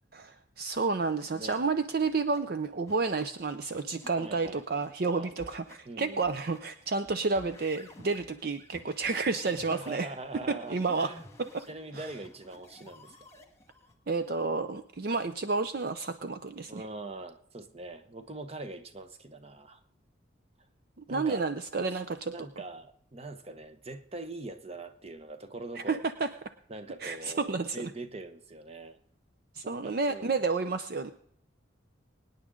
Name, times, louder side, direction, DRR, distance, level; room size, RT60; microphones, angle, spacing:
voice 1, 0.1-10.1 10.7-11.1 11.4-11.6 11.9-12.1 14.1-16.8 21.1-22.3 25.9-26.3 27.0-27.9 29.5-31.1, right 4 dB, 50° right, 10 dB, 0.5 m, -30 dB
sound 1, 1.2-1.6 2.0-2.4 2.9-3.2 3.7-4.1 4.5-4.9 5.3-5.8 6.1-6.6 7.0-13.9, left 1 dB, 15° left, 1.5 m, -53 dB
voice 2, 4.2-4.8 5.2-5.3 5.8-6.3 9.5-11.2 11.7-13.2 16.7-19.8 21.1-21.5 21.9-22.0 22.3-26.0 26.7-29.0 29.6-30.4, right 2 dB, 30° right, 9 dB, 0.9 m, -42 dB
24.0 x 9.7 x 3.8 m, 0.65 s
head